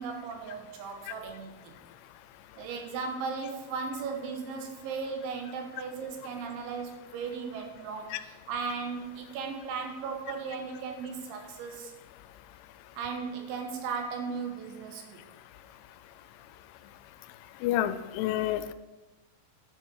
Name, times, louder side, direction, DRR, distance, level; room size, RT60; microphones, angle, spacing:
voice 1, 0.0-1.8 2.6-11.9 13.0-15.2, right 5 dB, 80° right, 4 dB, 3.5 m, -36 dB
voice 2, 17.6-18.7, left 12 dB, 90° left, 12 dB, 3.0 m, -29 dB
10.5 x 7.0 x 4.7 m, 1.1 s
omnidirectional pair, 5.4 m